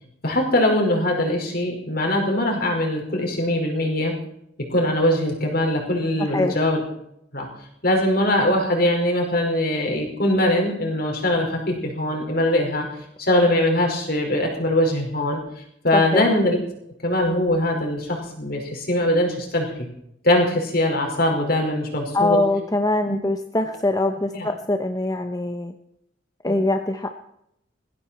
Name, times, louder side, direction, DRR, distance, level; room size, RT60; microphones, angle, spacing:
voice 1, 0.2-4.1 4.6-6.8 7.3-7.5 7.8-12.9 13.2-15.4 15.8-16.6 17.0-19.7 20.2-22.4 23.1-23.2 24.3-24.5 26.5-26.6, left 1 dB, 50° left, 1 dB, 5.1 m, -22 dB
voice 2, 15.9-16.3 22.1-25.7 26.4-27.2, left 2 dB, 20° left, 6 dB, 0.9 m, -23 dB
20.0 x 15.0 x 4.4 m, 0.77 s
head